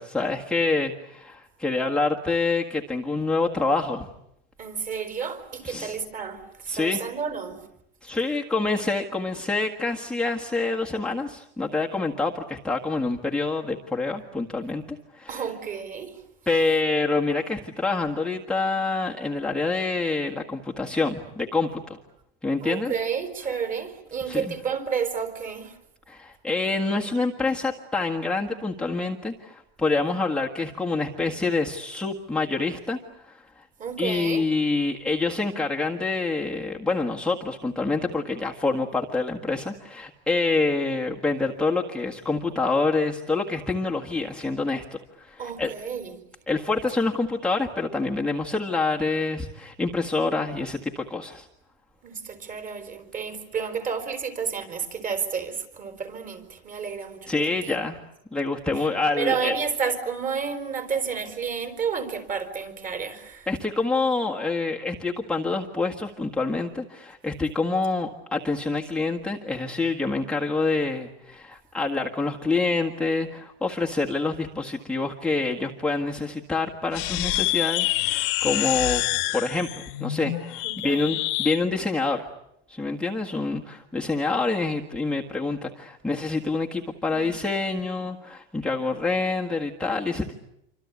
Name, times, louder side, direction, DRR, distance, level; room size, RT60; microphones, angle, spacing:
voice 1, 0.0-4.1 5.6-6.0 6.7-7.0 8.0-14.8 15.1-15.5 16.5-22.0 22.4-22.9 24.3-24.5 26.1-33.6 34.0-45.7 46.5-51.5 57.3-58.0 58.3-59.5 63.5-79.0 79.3-82.3 82.7-90.3, left 3 dB, 5° left, -1 dB, 1.6 m, -27 dB
voice 2, 4.6-7.6 15.3-16.2 22.6-25.7 33.8-34.4 45.4-46.1 52.0-57.8 59.2-63.5 80.6-81.1 87.1-87.3, right 6 dB, 25° right, 8 dB, 4.7 m, -31 dB
sound 1, 76.9-81.6, left 20 dB, 55° left, 1.5 m, -27 dB
27.5 x 25.5 x 8.4 m, 0.80 s
supercardioid pair, 150°, 30 cm